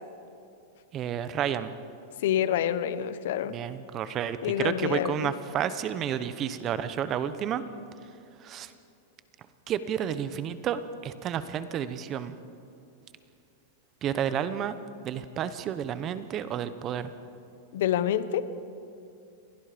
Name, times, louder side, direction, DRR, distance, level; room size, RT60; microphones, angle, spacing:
voice 1, 0.9-1.7 3.5-7.6 8.4-8.7 9.7-12.4 14.0-14.8 15.0-17.1, right 9 dB, 30° right, 13 dB, 1.0 m, -31 dB
voice 2, 2.2-3.6 4.4-5.3 17.7-18.4, left 10 dB, 70° left, 14 dB, 1.0 m, -27 dB
29.0 x 22.0 x 5.2 m, 2.6 s
supercardioid pair, 145°, 0 cm